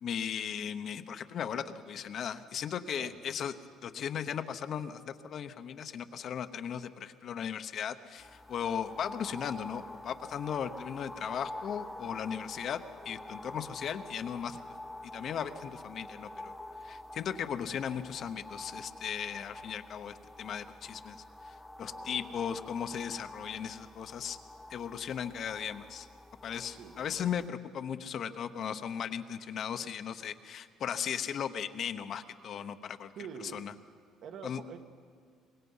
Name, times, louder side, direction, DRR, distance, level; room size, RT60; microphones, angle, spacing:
voice 1, 0.0-3.5 3.8-14.6 15.0-16.5 16.8-24.4 24.7-26.1 26.4-33.1 33.4-33.7 34.4-34.6, left 8 dB, 45° left, 9 dB, 0.9 m, -37 dB
voice 2, 3.0-3.3 21.8-22.4 26.8-27.4 33.1-33.8 34.2-34.8, right 7 dB, 55° right, 6 dB, 1.5 m, -47 dB
sound 1, 8.2-27.5, left 1 dB, 5° left, 0.8 m, -47 dB
23.5 x 21.0 x 5.6 m, 2.2 s
cardioid pair, 140°, 0 cm